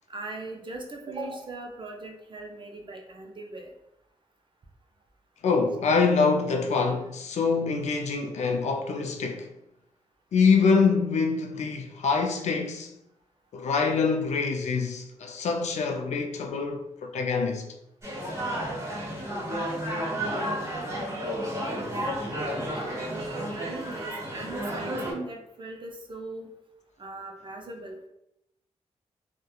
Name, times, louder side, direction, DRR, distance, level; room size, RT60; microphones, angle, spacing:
voice 1, 0.1-3.7 22.7-26.5 27.0-28.1, right 2 dB, 40° right, 0.5 m, -39 dB
voice 2, 5.4-9.5 10.3-12.9 13.5-17.7, left 5 dB, 60° left, 0.4 m, -25 dB
sound 1, 18.0-25.1, equal, 20° right, 1.3 m, -32 dB
2.7 x 2.1 x 2.3 m
cardioid pair, 50°, 13 cm